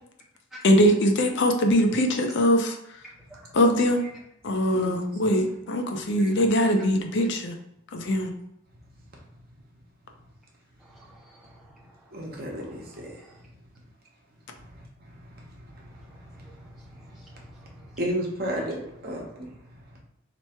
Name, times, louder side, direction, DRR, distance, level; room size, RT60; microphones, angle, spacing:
voice 1, 0.6-3.0 3.5-4.1 4.4-7.6 7.9-8.3, equal, 55° left, 4 dB, 0.6 m, -22 dB
voice 2, 10.8-11.8 12.8-13.3 17.1-17.7, equal, ahead, -5 dB, 0.4 m, -51 dB
voice 3, 12.1-13.2 14.6-15.9 16.3-16.4 17.0-17.5 17.7-19.5, equal, 45° right, -1 dB, 1.1 m, -34 dB
3.3 x 3.1 x 4.4 m, 0.81 s
head